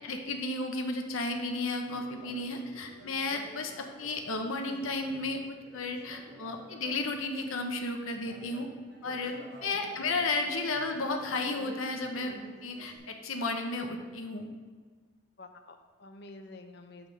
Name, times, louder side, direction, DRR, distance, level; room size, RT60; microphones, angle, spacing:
voice 1, 0.0-8.7 9.0-12.3 12.6-14.5, left 2 dB, 85° left, 4 dB, 0.8 m, -33 dB
Conversation, 1.8-7.6 8.1-13.0, equal, 50° right, 1.3 m, -51 dB
voice 2, 15.4-17.1, left 2 dB, 50° left, 7 dB, 0.6 m, -49 dB
8.8 x 3.6 x 6.3 m, 1.5 s
head